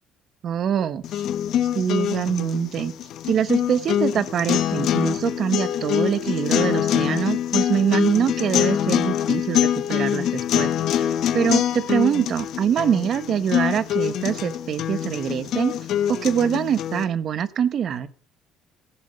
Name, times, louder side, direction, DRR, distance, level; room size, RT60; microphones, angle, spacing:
voice 1, 0.4-1.0 1.7-2.9 3.3-10.7 11.3-15.7 16.1-18.1, right 8 dB, 40° right, 14 dB, 1.0 m, -24 dB
sound 1, 1.0-17.0, left 10 dB, 55° left, 1.0 m, -24 dB
15.0 x 7.0 x 6.8 m, 0.43 s
cardioid pair, 155°, 0 cm